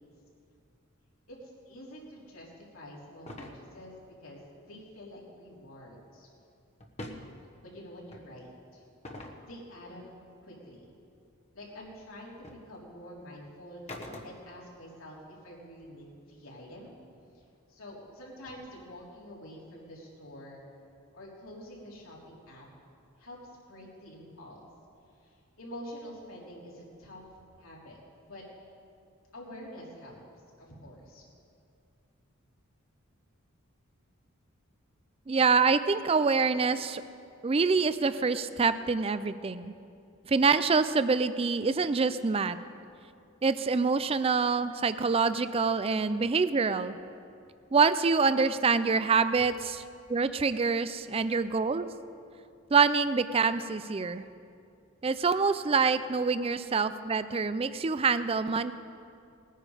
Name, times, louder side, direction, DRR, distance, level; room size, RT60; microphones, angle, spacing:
voice 1, 1.3-6.3 7.6-8.8 9.4-10.0 10.4-10.8 11.5-16.9 17.3-17.4 17.7-20.6 21.1-22.7 23.1-24.6 25.2-27.2 27.6-28.4 29.3-30.2 30.6-31.2, equal, 80° left, -4 dB, 3.4 m, -47 dB
sound 1, 3.3-3.6 6.8-7.3 8.1-8.3 9.0-9.4 11.7-11.8 12.4-12.6 13.9-14.6, left 1 dB, 30° left, 1.2 m, -42 dB
voice 2, 35.3-37.0 37.4-39.7 40.3-42.6 43.4-46.9 47.7-49.8 50.1-51.9 52.7-54.3 55.0-58.7, right 5 dB, 30° right, 13 dB, 0.4 m, -26 dB
19.5 x 10.0 x 4.9 m, 2.5 s
head